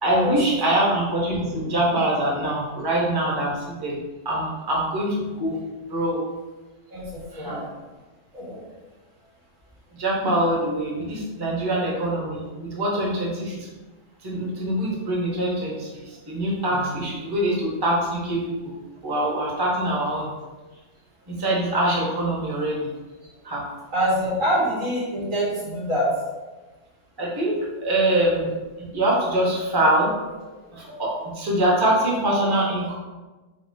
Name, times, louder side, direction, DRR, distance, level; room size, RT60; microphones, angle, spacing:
voice 1, 0.0-4.0 4.2-5.6 5.9-6.2 7.3-7.6 9.9-13.7 14.2-18.7 19.0-20.3 21.3-22.9 23.4-23.7 27.2-28.5 28.8-30.1 30.7-32.9, right 1 dB, 20° right, -4 dB, 0.8 m, -24 dB
voice 2, 6.9-7.6 8.3-8.6 23.9-26.1, equal, 85° right, -6 dB, 1.7 m, -25 dB
4.2 x 3.7 x 2.7 m, 1.2 s
omnidirectional pair, 1.3 m